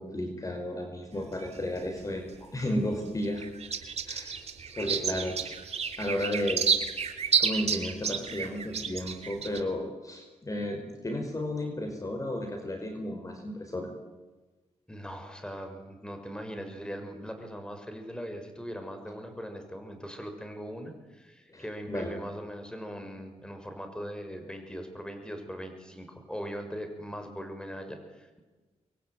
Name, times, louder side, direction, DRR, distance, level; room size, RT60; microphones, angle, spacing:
voice 1, 0.0-3.5 4.1-4.4 4.7-5.5 6.0-6.6 7.4-13.9 21.5-22.2, left 1 dB, 30° left, 5 dB, 5.1 m, -33 dB
sound 1, 1.1-2.6 3.0-9.6, right 6 dB, 65° right, 3.0 m, -31 dB
voice 2, 14.9-28.4, equal, 5° left, 6 dB, 6.4 m, -40 dB
26.5 x 22.5 x 9.6 m, 1.2 s
cardioid pair, 75°, 12 cm